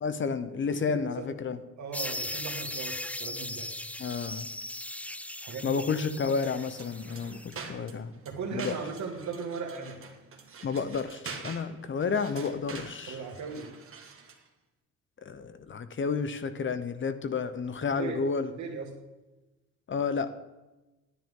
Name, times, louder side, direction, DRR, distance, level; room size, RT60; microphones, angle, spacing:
voice 1, 0.0-1.6 4.0-4.5 5.6-8.1 8.5-8.8 10.6-13.2 15.2-18.5 19.9-20.3, left 5 dB, 40° left, 12 dB, 0.8 m, -31 dB
voice 2, 0.7-1.3 1.8-3.7 5.4-5.7 8.2-10.0 13.1-13.7 18.0-18.2 18.6-18.9, right 5 dB, 70° right, 3 dB, 2.2 m, -37 dB
sound 1, 1.9-7.5, left 1 dB, 5° left, 0.4 m, -38 dB
sound 2, 6.4-14.5, right 5 dB, 45° right, 1.6 m, -46 dB
10.5 x 9.9 x 3.8 m, 1.1 s
cardioid pair, 90°, 30 cm